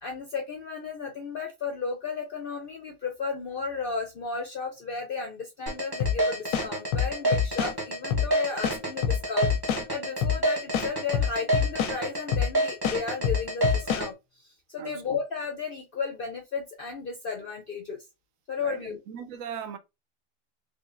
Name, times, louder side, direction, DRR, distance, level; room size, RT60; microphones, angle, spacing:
voice 1, 0.0-14.1 14.4-18.0 18.5-19.0, left 5 dB, 60° left, 0.5 m, -34 dB
sound 1, 5.7-14.1, right 2 dB, 20° right, 0.8 m, -28 dB
sound 2, 6.0-6.2 6.5-7.7 8.1-8.3 8.6-9.8 10.2-10.4 10.7-12.0 12.3-12.5 12.8-14.1, left 8 dB, 85° left, 1.1 m, -26 dB
voice 2, 18.6-19.8, right 8 dB, 75° right, 0.9 m, -39 dB
3.7 x 3.0 x 2.4 m
omnidirectional pair, 1.5 m